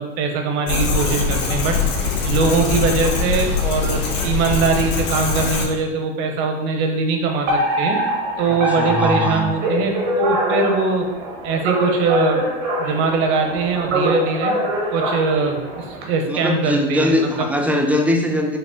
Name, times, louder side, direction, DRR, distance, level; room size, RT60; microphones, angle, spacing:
voice 1, 0.0-1.8 2.2-8.0 8.4-11.1 11.4-12.5 12.8-14.6 14.9-17.5, right 4 dB, 60° right, 4 dB, 0.9 m, -21 dB
sound 1, 0.7-5.7, left 4 dB, 80° left, 1.2 m, -22 dB
Alarm, 7.5-16.0, equal, 75° right, 1.2 m, -23 dB
voice 2, 8.5-9.5 16.3-18.6, left 1 dB, 5° right, 2 dB, 0.4 m, -21 dB
5.5 x 2.1 x 3.5 m, 1.1 s
hypercardioid pair, 100°, 37 cm